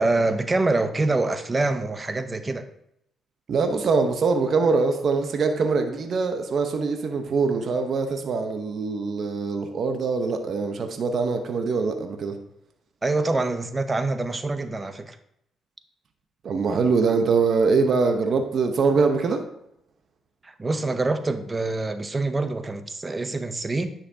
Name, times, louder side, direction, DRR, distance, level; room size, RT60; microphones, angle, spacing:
voice 1, 0.0-2.6 13.0-15.2 20.4-23.9, right 2 dB, 25° right, 10 dB, 0.7 m, -25 dB
voice 2, 3.5-12.4 16.4-19.4, right 4 dB, 55° right, 5 dB, 0.9 m, -23 dB
9.8 x 5.8 x 2.8 m, 0.76 s
cardioid pair, 90°, 0 cm